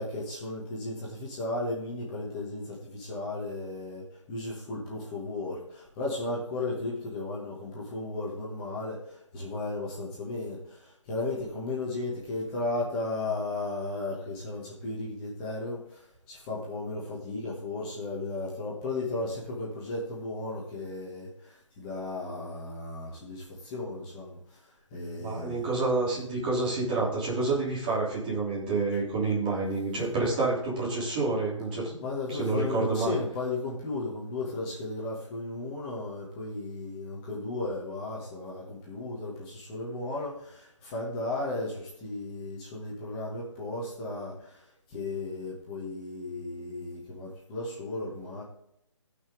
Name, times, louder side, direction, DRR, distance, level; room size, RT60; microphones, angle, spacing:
voice 1, 0.0-9.0 9.3-10.6 11.1-15.8 16.3-21.3 21.8-24.4 24.9-25.6 32.0-44.3 44.9-48.4, left 2 dB, 15° left, -5 dB, 2.2 m, -35 dB
voice 2, 25.2-32.0 32.3-33.1, right 3 dB, 20° right, -6 dB, 3.2 m, -28 dB
17.0 x 6.0 x 3.7 m, 0.76 s
hypercardioid pair, 170°, 16 cm